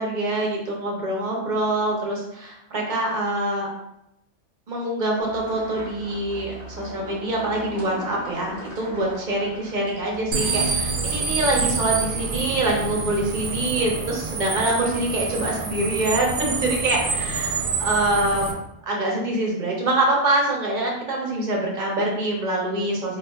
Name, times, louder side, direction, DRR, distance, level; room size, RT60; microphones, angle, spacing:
voice 1, 0.0-3.7 4.7-18.5 18.8-23.2, right 2 dB, 45° right, -2 dB, 0.7 m, -25 dB
sound 1, 5.2-10.7, equal, 25° left, 1.6 m, -39 dB
sound 2, 10.3-18.5, right 4 dB, 80° right, 0.4 m, -27 dB
4.1 x 2.5 x 2.3 m, 0.82 s
omnidirectional pair, 1.4 m